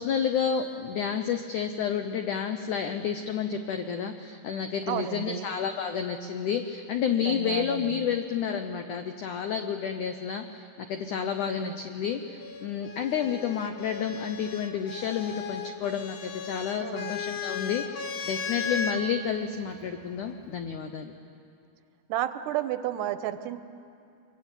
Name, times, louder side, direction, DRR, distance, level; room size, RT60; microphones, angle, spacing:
voice 1, 0.0-21.1, left 7 dB, 80° left, 6 dB, 1.8 m, -30 dB
voice 2, 4.9-5.5 7.2-8.1 11.4-11.8 16.8-17.2 22.1-23.6, right 12 dB, 80° right, 11 dB, 2.8 m, -32 dB
sound 1, 12.4-19.0 20.1-20.7, left 6 dB, 65° left, 1.6 m, -36 dB
24.5 x 23.0 x 9.0 m, 2.6 s
omnidirectional pair, 4.9 m